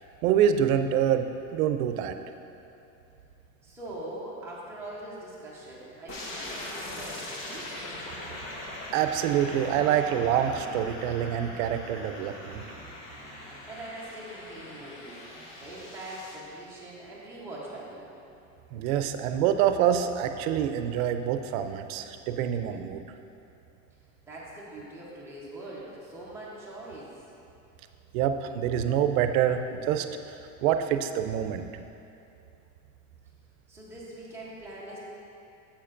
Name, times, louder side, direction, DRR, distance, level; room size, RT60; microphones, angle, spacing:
voice 1, 0.2-2.2 8.9-12.6 18.7-23.0 28.1-30.1 30.6-31.7, right 9 dB, 85° right, 8 dB, 0.6 m, -26 dB
voice 2, 3.6-7.7 13.6-15.2 15.6-18.1 24.3-27.1 33.7-35.0, right 1 dB, 5° right, -8 dB, 0.9 m, -42 dB
sound 1, 6.1-16.3, left 1 dB, 75° left, 1.5 m, -41 dB
8.7 x 7.5 x 2.5 m, 2.7 s
cardioid pair, 175°, 40 cm